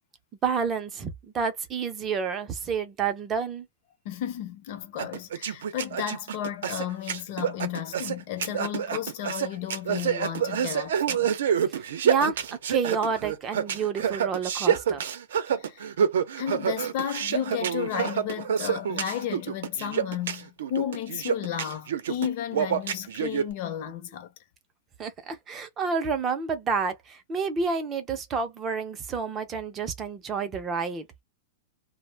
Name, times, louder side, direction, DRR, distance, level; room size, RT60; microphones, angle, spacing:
voice 1, 0.4-3.7 11.7-12.4 12.7-15.0 25.0-31.0, right 5 dB, 15° right, 0.4 m, -29 dB
voice 2, 4.0-11.3 15.6-15.9 16.4-24.3, left 10 dB, 35° left, 0.6 m, -33 dB
sound 1, 5.0-23.5, right 8 dB, 75° right, 0.5 m, -27 dB
2.5 x 2.0 x 3.2 m
supercardioid pair, 175°, 0 cm